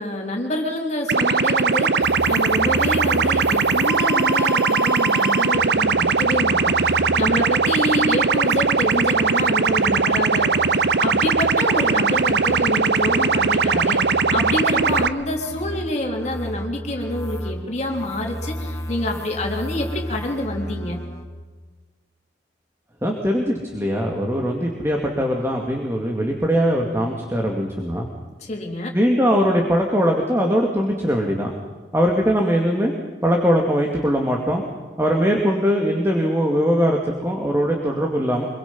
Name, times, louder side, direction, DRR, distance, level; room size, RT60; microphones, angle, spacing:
voice 1, 0.0-21.0 28.4-29.0, left 1 dB, 40° left, 1 dB, 3.9 m, -27 dB
sound 1, 1.1-15.1, right 5 dB, 65° right, 0.8 m, -19 dB
sound 2, 2.0-21.3, left 1 dB, 15° left, 1.9 m, -34 dB
voice 2, 23.0-28.1 28.9-31.5 31.9-32.9 33.2-34.6 35.0-38.5, equal, 15° right, 0 dB, 2.3 m, -21 dB
26.0 x 23.0 x 5.6 m, 1.4 s
head